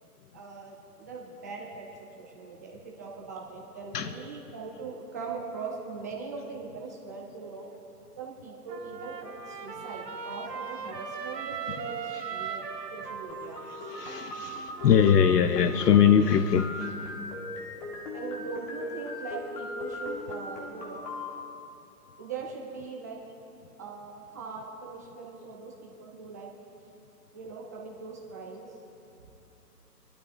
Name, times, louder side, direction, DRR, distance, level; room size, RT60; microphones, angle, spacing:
voice 1, 0.3-7.7 8.2-12.6 12.9-13.6 18.1-21.1 22.2-23.2 23.8-26.5 27.3-28.7, right 4 dB, 10° right, 0.5 m, -40 dB
Trumpet, 8.7-15.3, right 6 dB, 85° right, 1.4 m, -39 dB
sound 1, 13.3-21.3, left 1 dB, 20° left, 1.3 m, -38 dB
voice 2, 14.0-16.7, left 8 dB, 75° left, 0.7 m, -21 dB
22.0 x 12.0 x 2.5 m
hypercardioid pair, 150°, 48 cm